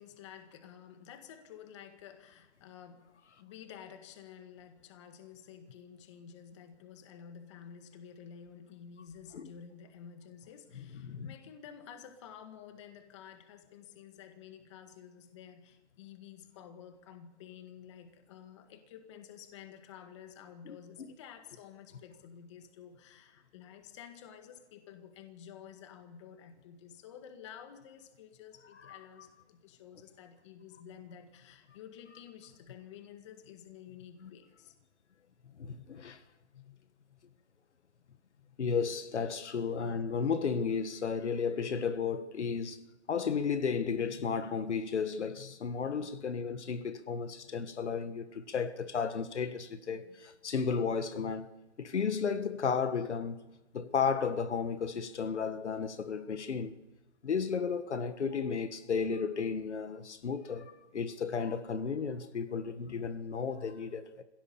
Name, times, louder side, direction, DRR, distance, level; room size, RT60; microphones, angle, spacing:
voice 1, 0.0-3.1 3.4-34.7, left 8 dB, 25° left, 1.7 m, -51 dB
voice 2, 11.0-11.3 20.6-21.1 28.9-29.0 34.2-34.3 35.6-36.2 38.6-42.8 43.1-51.5 51.8-53.4 53.7-56.8 57.2-64.2, left 6 dB, 70° left, 1.6 m, -33 dB
25.5 x 16.5 x 7.0 m
hypercardioid pair, 165°, 35 cm